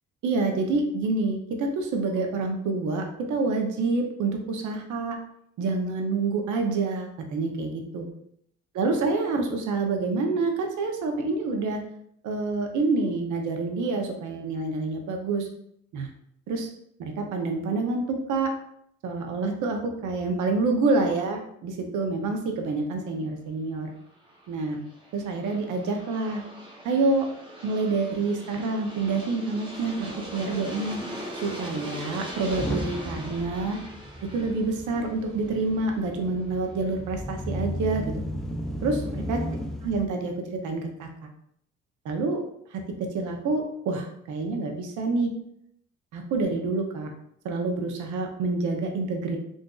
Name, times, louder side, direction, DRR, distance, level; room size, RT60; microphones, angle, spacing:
voice 1, 0.2-5.2 5.6-8.1 8.7-11.8 12.2-15.5 15.9-16.1 16.5-16.7 17.0-18.5 19.0-23.9 24.5-24.8 25.1-26.4 26.8-27.2 27.6-31.0 31.4-33.8 34.3-38.1 38.8-39.4 39.8-40.3 40.6-41.1 42.0-42.4 42.7-42.8 43.1-45.3 46.1-47.1 47.4-49.4, right 3 dB, 75° right, 3 dB, 0.7 m, -27 dB
Aircraft, 24.1-36.9, equal, 15° right, 0.8 m, -41 dB
Motor vehicle (road) / Engine starting / Accelerating revving vroom, 29.7-29.8 30.0-30.3 30.9-31.0 32.3-40.1, equal, ahead, 0.4 m, -35 dB
3.8 x 2.5 x 2.3 m, 0.70 s
cardioid pair, 90°, 30 cm